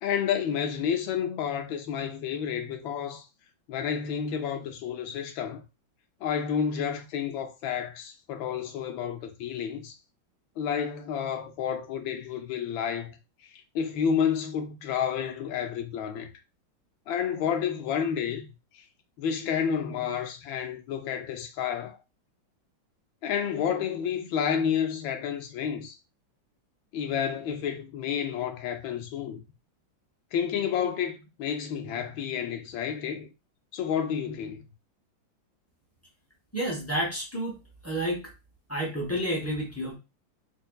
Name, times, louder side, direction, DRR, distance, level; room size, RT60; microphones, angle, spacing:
voice 1, 0.0-3.2 3.7-5.6 6.2-9.9 10.6-16.3 17.1-18.8 19.2-22.0 23.2-26.0 26.9-29.4 30.3-33.3 33.7-34.6, left 8 dB, 90° left, 1.4 m, -30 dB
voice 2, 36.5-37.6 37.8-38.2 38.7-40.0, equal, 20° left, 0.3 m, -30 dB
5.3 x 2.5 x 2.3 m
omnidirectional pair, 2.1 m